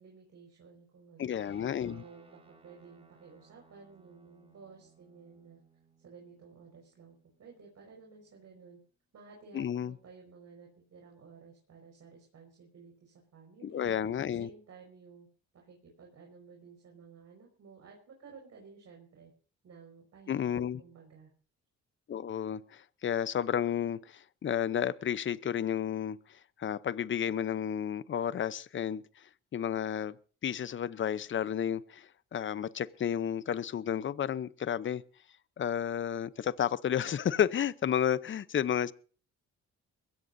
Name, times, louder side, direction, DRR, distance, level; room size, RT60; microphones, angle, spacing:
voice 1, 0.0-1.4 1.8-5.6 6.0-8.8 9.1-13.9 14.3-15.3 15.5-19.3 19.6-21.3, right 5 dB, 60° right, 5.2 m, -54 dB
voice 2, 1.2-2.0 9.5-9.9 13.6-14.5 20.3-20.8 22.1-30.2 30.4-35.0 35.6-38.9, left 9 dB, 40° left, 0.7 m, -32 dB
Guitar, 1.4-9.0, right 4 dB, 20° right, 3.6 m, -64 dB
22.0 x 16.0 x 2.7 m
cardioid pair, 90°, 30 cm